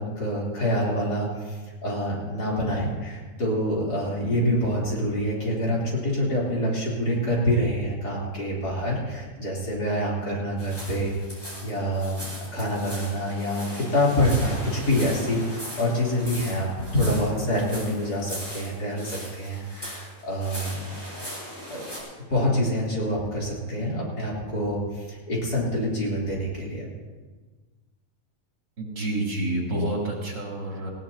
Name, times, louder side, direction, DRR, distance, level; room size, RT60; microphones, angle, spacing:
voice 1, 0.0-11.1 11.6-20.9 21.7-21.8 22.3-26.9, equal, 65° left, -5 dB, 4.1 m, -26 dB
sound 1, 10.6-22.0, equal, 15° left, 4.9 m, -39 dB
voice 2, 28.8-30.9, right 1 dB, 80° right, -3 dB, 3.9 m, -28 dB
19.0 x 16.5 x 2.9 m, 1.4 s
omnidirectional pair, 1.9 m